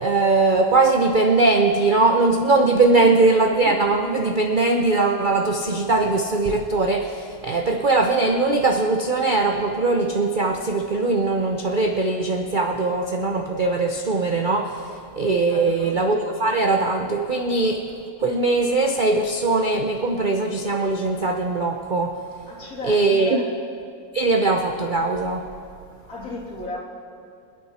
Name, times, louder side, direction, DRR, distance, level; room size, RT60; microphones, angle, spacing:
voice 1, 0.0-14.9 15.2-17.8 18.2-22.1 22.8-23.4 24.1-25.5, right 3 dB, 60° right, 4 dB, 0.5 m, -20 dB
voice 2, 15.4-15.9 22.5-23.6 26.1-26.8, left 2 dB, 50° left, -3 dB, 3.0 m, -34 dB
26.5 x 9.0 x 4.2 m, 2.4 s
omnidirectional pair, 2.0 m